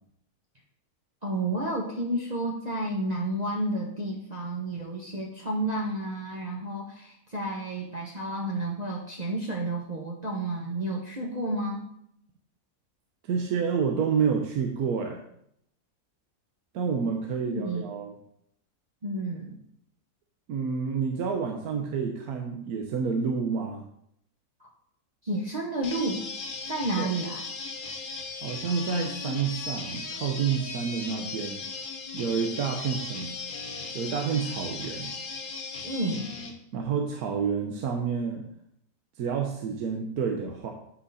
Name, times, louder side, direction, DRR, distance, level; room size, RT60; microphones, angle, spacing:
voice 1, 1.2-11.9 17.4-17.9 19.0-19.6 24.6-24.7 25.2-26.3 26.6-27.4 35.8-36.3, right 1 dB, 30° right, -3 dB, 0.9 m, -31 dB
voice 2, 13.2-15.2 16.7-18.1 20.5-23.8 26.9-27.1 28.4-31.6 32.1-33.4 33.9-35.1 36.7-38.5 39.2-40.7, right 6 dB, 75° right, 3 dB, 1.2 m, -29 dB
sound 1, 25.8-36.5, left 4 dB, 70° left, 1.5 m, -37 dB
8.1 x 5.7 x 4.1 m, 0.73 s
omnidirectional pair, 1.6 m